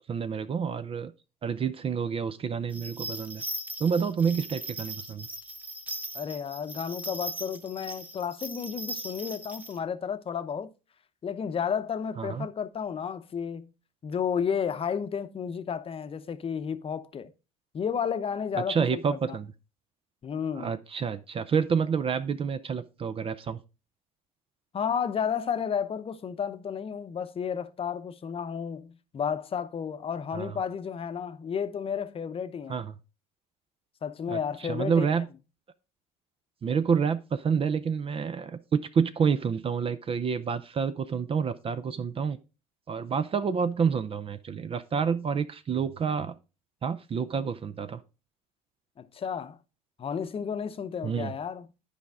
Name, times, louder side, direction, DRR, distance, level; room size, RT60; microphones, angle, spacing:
voice 1, 0.1-1.1 1.4-3.4 3.8-5.3 12.2-12.5 18.6-19.5 20.6-23.6 30.3-30.6 32.7-33.0 34.3-34.4 34.7-35.3 36.6-42.4 42.9-46.3 46.8-48.0 51.0-51.3, right 6 dB, 35° right, 0.6 m, -28 dB
sound 1, 2.7-9.8, right 1 dB, 10° right, 1.1 m, -39 dB
voice 2, 6.1-10.7 11.2-13.7 14.0-17.3 17.7-19.2 20.2-20.7 24.7-32.8 34.0-35.1 49.0-49.6 50.0-51.7, left 7 dB, 35° left, 0.8 m, -32 dB
10.5 x 5.0 x 3.5 m
hypercardioid pair, 80°, 17 cm